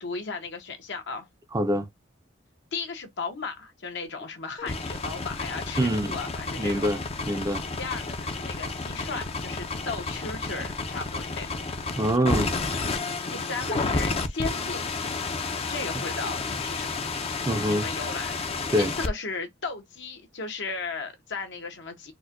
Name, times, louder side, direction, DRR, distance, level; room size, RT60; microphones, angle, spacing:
voice 1, 0.0-1.3 2.7-6.8 7.8-11.6 13.3-14.8 15.7-17.0 17.7-22.1, left 4 dB, 65° left, 0.9 m, -36 dB
voice 2, 1.5-1.9 5.8-6.1 6.6-7.0 7.3-7.6 12.0-12.5 17.5-17.9 18.7-18.9, equal, 20° right, 0.5 m, -24 dB
sound 1, 4.6-19.1, left 3 dB, 30° left, 0.5 m, -31 dB
4.2 x 2.2 x 2.5 m
head